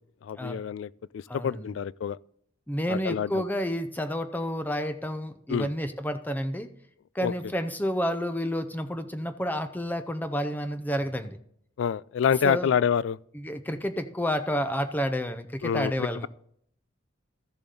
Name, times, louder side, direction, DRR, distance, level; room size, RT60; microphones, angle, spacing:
voice 1, 0.2-2.2 2.9-3.4 5.5-5.7 7.2-7.3 11.8-13.2 15.6-15.9, left 7 dB, 75° left, 0.3 m, -27 dB
voice 2, 1.3-1.7 2.7-6.7 7.1-11.4 12.4-12.7 13.3-16.3, equal, 10° left, 0.6 m, -30 dB
14.0 x 7.0 x 3.8 m
head